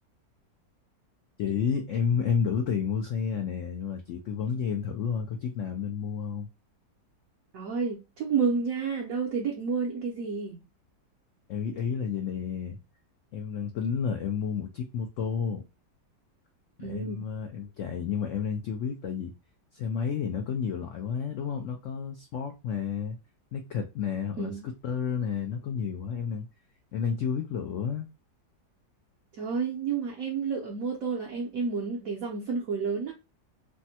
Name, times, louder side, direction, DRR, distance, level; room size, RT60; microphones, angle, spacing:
voice 1, 1.4-6.5 11.5-12.8 13.3-15.6 16.8-19.3 19.7-23.2 23.5-26.5 26.9-28.1, left 7 dB, 80° left, 0.6 m, -31 dB
voice 2, 7.5-10.6 16.8-17.2 24.4-24.7 29.3-33.1, right 5 dB, 65° right, 0.9 m, -30 dB
3.3 x 2.1 x 2.7 m
omnidirectional pair, 1.9 m